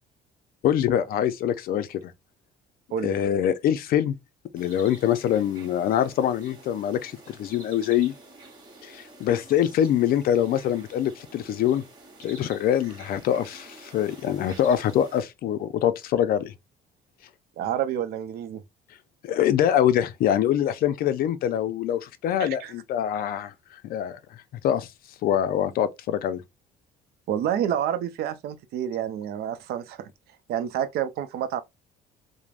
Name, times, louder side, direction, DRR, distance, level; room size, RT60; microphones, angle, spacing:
voice 1, 0.6-2.1 3.0-4.1 4.5-8.1 8.8-11.8 12.2-16.5 19.2-24.2 24.6-24.9 25.2-26.4, left 10 dB, 60° left, 0.4 m, -24 dB
sound 1, 4.5-15.2, right 2 dB, 25° right, 1.0 m, -48 dB
voice 2, 17.6-18.6 22.4-22.7 27.3-30.1 30.5-31.6, right 10 dB, 70° right, 0.5 m, -28 dB
3.2 x 2.1 x 2.4 m
cardioid pair, 110°, 17 cm